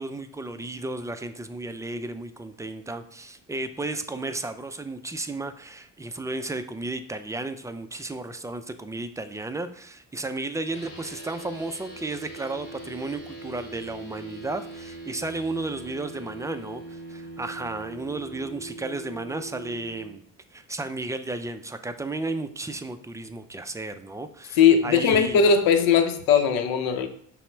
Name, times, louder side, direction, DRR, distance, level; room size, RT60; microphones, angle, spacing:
voice 1, 0.0-20.2 20.5-25.4, right 2 dB, 10° right, 9 dB, 0.4 m, -33 dB
sound 1, 10.7-20.1, right 2 dB, 35° left, 1.8 m, -41 dB
voice 2, 24.6-27.1, left 6 dB, 80° left, 6 dB, 0.7 m, -19 dB
5.6 x 2.1 x 4.4 m, 0.65 s
supercardioid pair, 75°, 34 cm